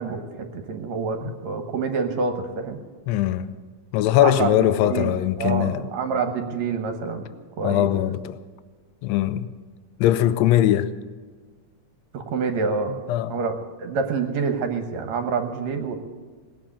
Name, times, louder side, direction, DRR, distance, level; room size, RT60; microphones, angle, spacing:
voice 1, 0.0-2.8 4.2-5.1 5.4-7.3 7.6-7.9 12.1-13.0 13.3-16.0, right 5 dB, 65° right, 2.3 m, -27 dB
voice 2, 3.1-3.6 3.9-5.8 7.6-8.4 9.0-9.5 10.0-10.9 13.1-13.4, left 12 dB, 85° left, 1.5 m, -21 dB
18.0 x 7.7 x 8.7 m
omnidirectional pair, 3.7 m